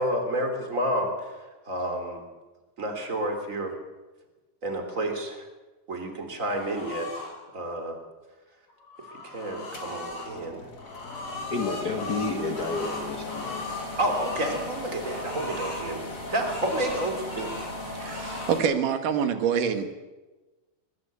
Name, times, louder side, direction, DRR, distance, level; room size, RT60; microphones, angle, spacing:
voice 1, 0.0-1.3 1.7-2.2 2.8-3.8 4.6-5.4 5.9-7.1 7.5-8.0 9.2-10.6 14.0-17.6, right 1 dB, 25° right, 5 dB, 3.4 m, -30 dB
sound 1, 6.5-7.3 8.7-10.3 10.8-14.6 15.0-15.9 16.3-17.7 18.0-18.6, left 3 dB, 85° left, 6.9 m, -38 dB
sound 2, 9.7-18.6, left 2 dB, 25° left, 3.5 m, -38 dB
voice 2, 11.5-13.6, left 3 dB, 40° left, 4 dB, 1.5 m, -30 dB
voice 3, 18.0-19.9, right 7 dB, 85° right, 8 dB, 3.3 m, -26 dB
22.0 x 21.0 x 8.3 m, 1.2 s
omnidirectional pair, 3.6 m